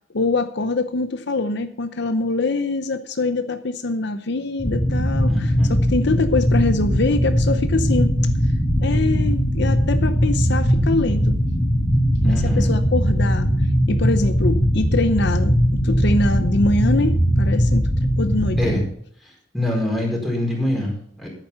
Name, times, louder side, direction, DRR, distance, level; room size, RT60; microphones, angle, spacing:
voice 1, 0.1-8.1 8.8-11.4 12.2-13.5 13.9-17.9 18.2-18.7, left 2 dB, 65° left, 9 dB, 0.8 m, -24 dB
sound 1, 4.6-18.8, equal, 25° left, 2.9 m, -19 dB
voice 2, 5.3-5.7 12.2-12.7 18.6-18.8 19.2-21.3, left 1 dB, ahead, -2 dB, 4.4 m, -25 dB
11.0 x 9.1 x 5.6 m, 0.63 s
head